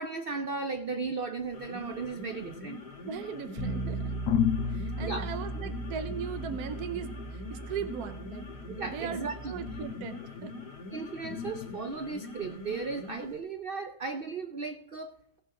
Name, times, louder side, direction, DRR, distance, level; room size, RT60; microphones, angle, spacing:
voice 1, 0.0-2.8 3.6-4.0 5.0-5.7 8.7-9.5 10.9-15.4, right 4 dB, 85° right, 7 dB, 0.4 m, -36 dB
sound 1, 1.4-13.4, left 3 dB, 70° left, 2.7 m, -44 dB
sound 2, 2.0-3.2 3.8-3.9 4.3-11.8, left 9 dB, 85° left, 1.5 m, -37 dB
voice 2, 3.0-4.1 4.7-8.5 8.9-10.5, right 7 dB, 65° right, 8 dB, 1.3 m, -38 dB
Bass guitar, 3.6-9.8, right 2 dB, 15° right, 2.4 m, -38 dB
16.5 x 6.5 x 4.8 m, 0.72 s
omnidirectional pair, 1.8 m